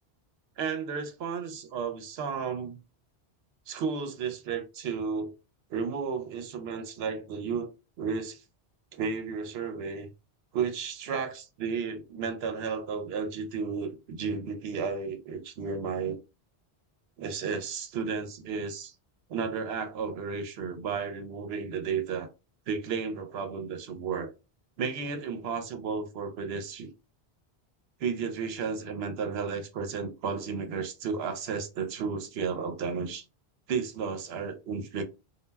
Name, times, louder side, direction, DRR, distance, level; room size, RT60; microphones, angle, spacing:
voice 1, 0.6-2.8 3.7-5.3 5.7-8.4 8.9-10.1 10.5-16.2 17.2-18.9 19.3-22.3 22.7-24.3 24.8-26.9 28.0-33.2 33.7-35.0, right 5 dB, 75° right, 0.8 m, -33 dB
2.2 x 2.1 x 3.3 m
omnidirectional pair, 1.1 m